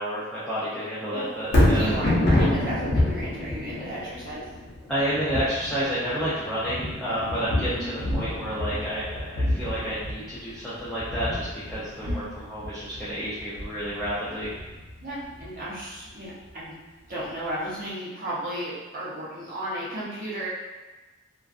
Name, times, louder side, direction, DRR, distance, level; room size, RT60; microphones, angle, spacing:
voice 1, 0.0-1.9 4.9-14.5, equal, 5° left, -12 dB, 0.4 m, -30 dB
Thunder, 1.4-15.6 16.1-16.2, left 1 dB, 55° left, 0.6 m, -27 dB
voice 2, 1.7-4.4 7.7-7.9 12.0-12.2 15.0-16.8 17.1-20.5, right 1 dB, 40° right, -8 dB, 0.7 m, -34 dB
2.4 x 2.3 x 2.4 m, 1.2 s
head